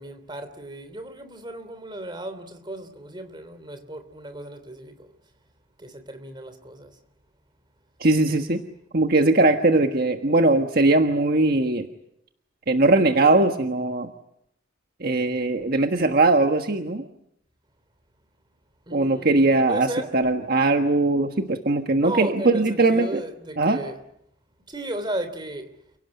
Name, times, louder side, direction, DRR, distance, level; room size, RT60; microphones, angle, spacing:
voice 1, 0.0-5.1 5.8-6.9 18.9-20.1 22.0-24.0 24.7-25.7, right 1 dB, 25° right, 3.2 m, -35 dB
voice 2, 8.0-8.6 8.9-11.9 12.7-14.1 15.0-17.0 18.9-23.2 23.6-23.8, right 2 dB, 50° right, 1.5 m, -20 dB
30.0 x 17.0 x 9.7 m
head